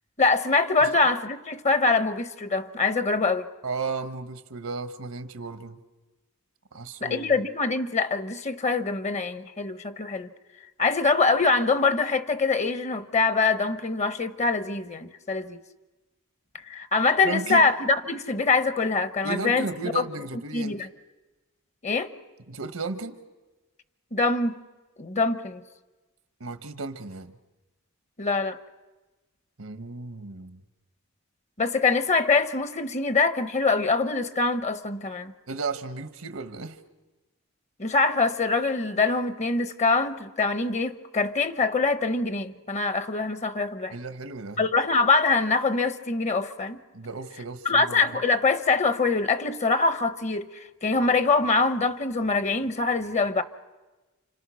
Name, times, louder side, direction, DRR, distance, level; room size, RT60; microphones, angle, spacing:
voice 1, 0.2-3.5 7.0-10.3 10.8-15.6 16.7-19.7 19.9-20.0 20.5-20.9 21.8-22.1 24.1-24.6 25.0-25.6 28.2-28.6 31.6-35.3 37.8-43.9 44.6-46.8 47.6-50.5 50.8-53.4, left 4 dB, 35° left, 1.0 m, -24 dB
voice 2, 3.6-5.8 6.7-7.3 17.2-17.7 19.2-20.9 22.5-23.2 26.4-27.4 29.6-30.6 35.5-36.8 43.9-44.6 46.9-48.2, right 4 dB, 85° right, 1.4 m, -34 dB
29.5 x 26.5 x 6.4 m
head